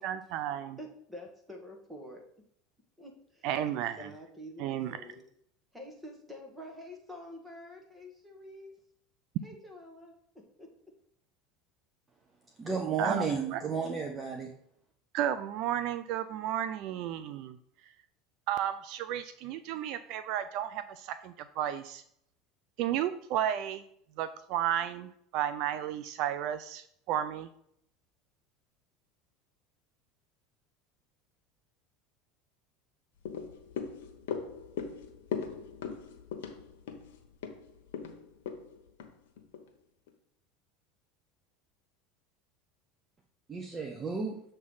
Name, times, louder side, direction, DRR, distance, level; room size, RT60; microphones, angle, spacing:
voice 1, 0.0-0.8 3.4-4.1 4.6-5.0 13.0-13.2 13.5-13.6 15.1-17.6 18.5-22.0 22.8-23.8 24.2-27.5, right 11 dB, 60° right, 12 dB, 0.4 m, -33 dB
voice 2, 0.8-2.2 3.0-3.5 4.0-5.2 5.7-8.8 9.4-10.9, left 1 dB, 5° right, 1 dB, 1.6 m, -48 dB
voice 3, 12.6-14.5 43.5-44.4, right 5 dB, 25° right, 2 dB, 0.8 m, -33 dB
sound 1, 33.2-39.7 40.1-40.2, left 7 dB, 85° left, 1.0 m, -40 dB
7.0 x 3.3 x 5.5 m, 0.70 s
supercardioid pair, 115°, 0 cm